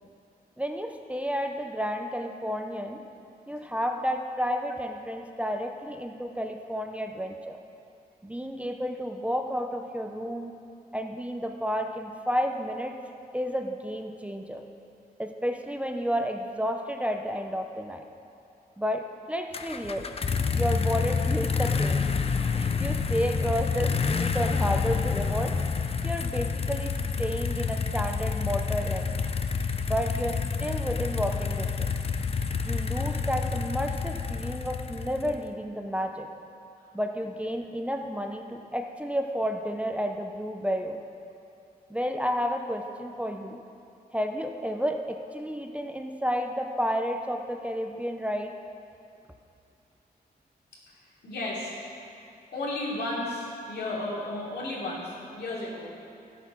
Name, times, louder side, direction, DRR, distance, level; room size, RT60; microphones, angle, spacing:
voice 1, 0.6-3.0 3.5-7.6 8.2-10.6 10.9-13.0 13.3-14.6 15.2-18.0 18.8-20.1 20.5-22.1 22.5-25.6 26.0-26.9 27.2-29.2 29.9-31.9 32.6-36.3 36.9-41.0 41.9-43.6 44.1-48.6, equal, 10° right, 4 dB, 0.6 m, -31 dB
sound 1, 19.5-35.5, left 5 dB, 35° left, 0.5 m, -28 dB
voice 2, 51.2-52.0 52.5-55.9, left 2 dB, 85° left, -5 dB, 2.9 m, -33 dB
13.0 x 8.2 x 6.0 m, 2.6 s
wide cardioid pair, 135°, 16 cm